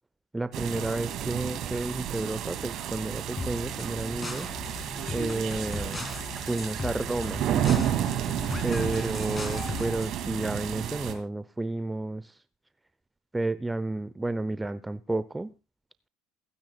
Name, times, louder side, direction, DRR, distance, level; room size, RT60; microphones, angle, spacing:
voice 1, 0.3-4.5 5.1-6.0 6.5-7.4 8.6-12.3 13.3-15.5, right 2 dB, 10° right, 0.6 m, -31 dB
sound 1, 0.5-11.1, right 10 dB, 50° right, 2.3 m, -31 dB
sound 2, 3.4-10.1, left 2 dB, 20° left, 2.3 m, -37 dB
28.0 x 9.6 x 2.3 m
figure-of-eight pair, 70°, 0 cm